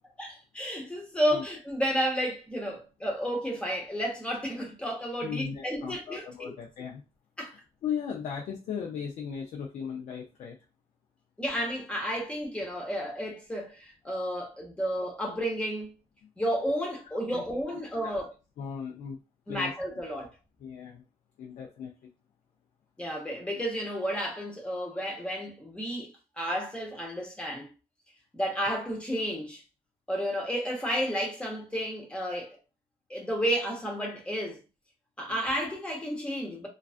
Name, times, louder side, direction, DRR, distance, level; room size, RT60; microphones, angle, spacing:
voice 1, 0.2-6.5 7.4-7.5 11.4-15.9 16.4-18.3 19.5-20.3 23.0-26.1 26.4-27.7 28.3-29.6 30.1-32.6 33.1-34.6 35.2-36.7, equal, 10° left, 0.8 m, -32 dB
voice 2, 5.2-7.0 7.5-10.6 17.3-17.4 18.0-18.2 18.6-19.2 19.5-19.7 20.6-21.0 21.4-22.1 35.3-35.4, left 7 dB, 70° left, 0.5 m, -37 dB
2.3 x 2.3 x 2.4 m
cardioid pair, 140°, 13 cm